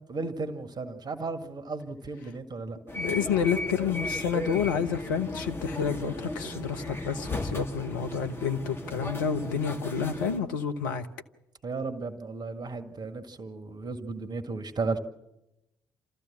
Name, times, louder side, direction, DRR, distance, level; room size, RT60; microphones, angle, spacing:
voice 1, 0.1-2.8 11.6-15.0, right 3 dB, 40° right, 8 dB, 1.8 m, -34 dB
sound 1, 2.9-10.4, left 1 dB, 20° left, 2.3 m, -36 dB
voice 2, 3.0-11.1, left 7 dB, 80° left, 7 dB, 1.0 m, -29 dB
27.5 x 14.0 x 7.3 m, 0.95 s
hypercardioid pair, 45°, 10 cm